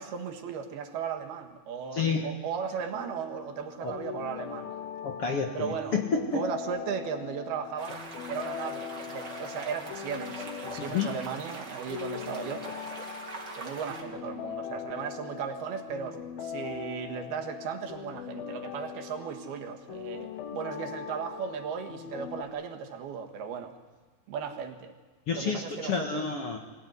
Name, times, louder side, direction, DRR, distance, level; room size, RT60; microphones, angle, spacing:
voice 1, 0.0-4.7 5.5-6.0 6.3-8.0 8.3-12.7 13.6-23.8 24.3-24.9 25.3-26.2, right 7 dB, 85° right, 4 dB, 3.6 m, -36 dB
voice 2, 1.9-2.3 3.8-4.0 5.0-6.4 10.8-11.2 25.3-26.6, left 5 dB, 55° left, 2 dB, 1.8 m, -30 dB
sound 1, 2.9-22.4, left 8 dB, 75° left, 3.0 m, -41 dB
sound 2, 7.8-14.0, right 3 dB, 30° right, 2.6 m, -42 dB
23.5 x 16.5 x 9.5 m, 1.3 s
omnidirectional pair, 4.4 m